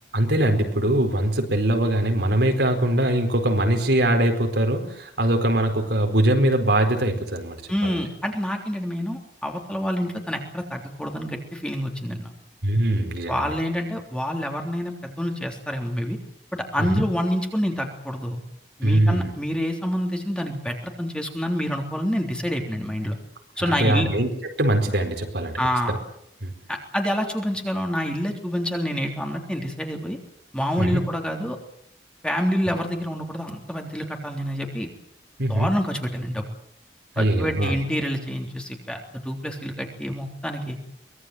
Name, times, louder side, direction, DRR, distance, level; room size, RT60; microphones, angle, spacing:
voice 1, 0.1-7.6 7.8-8.0 12.6-13.5 16.8-17.1 18.8-19.3 23.6-25.6 25.9-26.0 26.4-26.5 30.8-31.0 35.4-35.7 37.2-37.8, right 1 dB, 70° right, 4 dB, 4.5 m, -22 dB
voice 2, 7.7-12.3 13.3-16.2 16.5-18.4 18.8-23.2 23.6-24.1 25.6-26.0 26.7-30.2 30.5-31.6 32.2-34.9 35.5-36.5 37.2-40.8, equal, 5° left, 2 dB, 3.5 m, -27 dB
24.0 x 20.0 x 8.0 m, 0.71 s
head